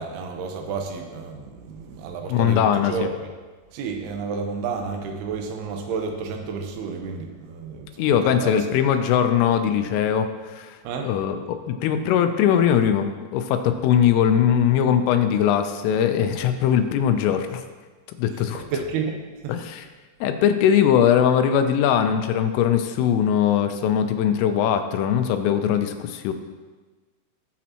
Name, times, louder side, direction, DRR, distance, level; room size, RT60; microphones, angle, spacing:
voice 1, 0.0-3.1 3.7-8.6 10.8-11.1 18.7-19.5, right 5 dB, 80° right, 3 dB, 2.4 m, -31 dB
voice 2, 2.3-3.1 8.0-17.6 18.2-18.6 19.5-19.9 20.2-26.3, left 9 dB, 85° left, 7 dB, 3.2 m, -21 dB
19.0 x 7.3 x 3.0 m, 1.3 s
omnidirectional pair, 5.9 m